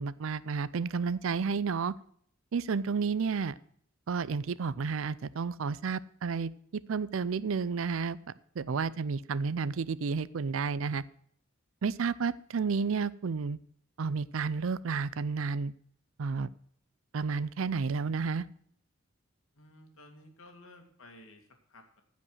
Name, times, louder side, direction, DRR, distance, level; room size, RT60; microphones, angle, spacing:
voice 1, 0.0-1.9 2.5-3.5 4.1-6.5 6.9-8.2 8.6-11.0 11.8-13.6 14.0-15.7 16.2-16.5 17.1-18.5, right 5 dB, 75° right, 18 dB, 0.5 m, -31 dB
voice 2, 19.6-22.0, left 1 dB, 80° left, 4 dB, 2.2 m, -54 dB
15.0 x 5.3 x 6.3 m, 0.63 s
head